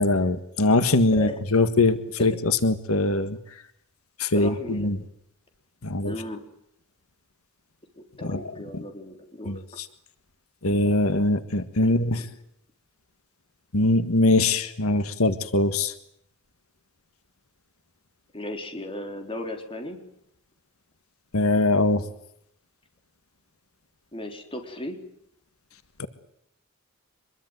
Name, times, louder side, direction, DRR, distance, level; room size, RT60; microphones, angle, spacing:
voice 1, 0.0-3.4 4.2-5.0 5.8-6.1 8.2-8.4 8.7-8.8 9.5-9.6 10.6-12.2 13.7-15.9 21.3-22.1 26.0-26.1, left 2 dB, 90° left, 11 dB, 1.7 m, -22 dB
voice 2, 1.1-1.4 2.2-2.3 4.3-5.0 6.0-6.4 8.0-9.5 11.8-12.3 18.3-20.0 24.1-25.0, left 1 dB, 25° left, 4 dB, 4.3 m, -36 dB
25.5 x 22.0 x 9.4 m, 0.73 s
head